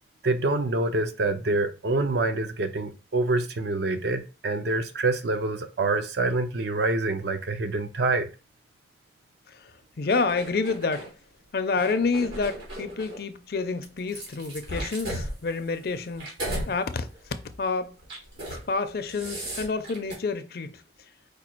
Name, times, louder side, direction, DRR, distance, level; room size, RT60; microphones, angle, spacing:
voice 1, 0.2-8.3, right 2 dB, 70° right, 0.5 m, -26 dB
voice 2, 10.0-11.1 11.5-16.3 16.7-17.1 17.6-17.9 18.5-20.8, left 4 dB, 60° left, 0.5 m, -28 dB
sound 1, 10.1-11.1 11.7-13.2 13.8-16.7 17.1-17.4 18.0-18.6 18.9-20.1, right 1 dB, 90° right, 2.5 m, -36 dB
5.0 x 2.3 x 4.3 m
head